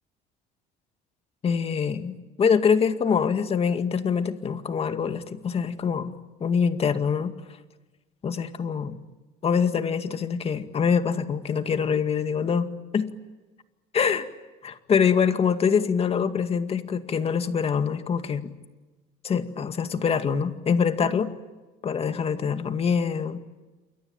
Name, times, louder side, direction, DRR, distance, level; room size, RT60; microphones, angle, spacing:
voice 1, 1.4-6.1 6.4-7.3 8.2-9.0 9.4-12.7 12.9-13.1 13.9-14.3 14.9-18.5 19.2-21.3 21.8-23.4, left 6 dB, 35° left, 8 dB, 2.1 m, -24 dB
28.5 x 23.0 x 8.9 m, 1.2 s
cardioid pair, 120°, 17 cm